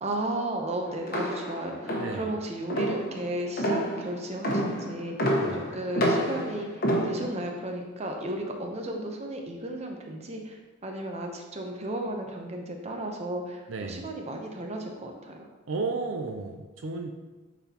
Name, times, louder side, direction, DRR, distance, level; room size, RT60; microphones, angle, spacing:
voice 1, 0.0-15.3, right 1 dB, 30° right, 2 dB, 0.7 m, -34 dB
sound 1, 1.1-7.5, equal, 50° left, 1.1 m, -29 dB
voice 2, 13.7-14.1 15.7-17.1, right 3 dB, 65° right, 4 dB, 0.5 m, -33 dB
8.6 x 4.1 x 2.9 m, 1.2 s
head